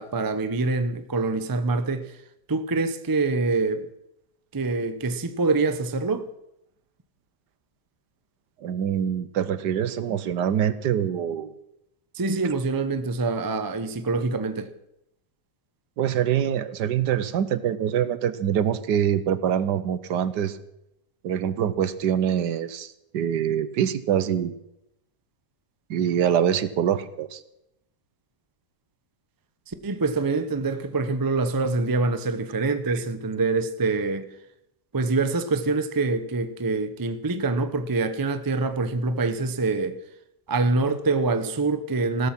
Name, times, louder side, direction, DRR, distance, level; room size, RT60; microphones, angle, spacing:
voice 1, 0.0-2.1 2.5-3.9 4.5-6.3 12.1-14.7 29.8-34.3 34.9-40.0 40.5-42.3, right 3 dB, 25° right, 0.5 m, -25 dB
voice 2, 8.6-11.5 16.0-20.6 21.2-24.6 25.9-27.4 32.9-33.0, right 9 dB, 75° right, 1.5 m, -25 dB
16.0 x 13.0 x 6.0 m
omnidirectional pair, 1.9 m